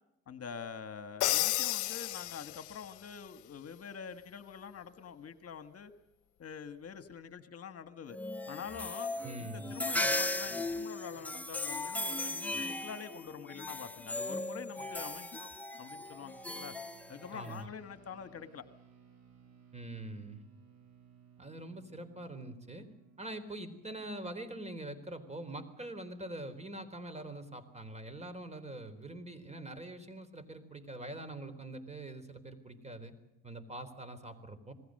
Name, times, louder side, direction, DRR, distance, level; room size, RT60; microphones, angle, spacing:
voice 1, 0.3-5.9 6.4-8.2 8.5-9.1 9.4-15.5 15.8-16.7 17.1-18.6, left 7 dB, 50° left, 11 dB, 1.5 m, -46 dB
Crash cymbal, 1.2-2.9, left 15 dB, 75° left, 0.8 m, -32 dB
sound 1, 8.1-17.6, left 2 dB, 5° left, 1.6 m, -37 dB
voice 2, 9.2-9.8 17.3-17.7 19.7-20.4 21.4-22.9 23.2-33.1 33.4-34.7, right 1 dB, 20° right, 12 dB, 4.0 m, -44 dB
sound 2, 16.0-25.7, right 7 dB, 60° right, 8.0 m, -62 dB
27.5 x 20.0 x 6.6 m, 0.88 s
cardioid pair, 90°, 30 cm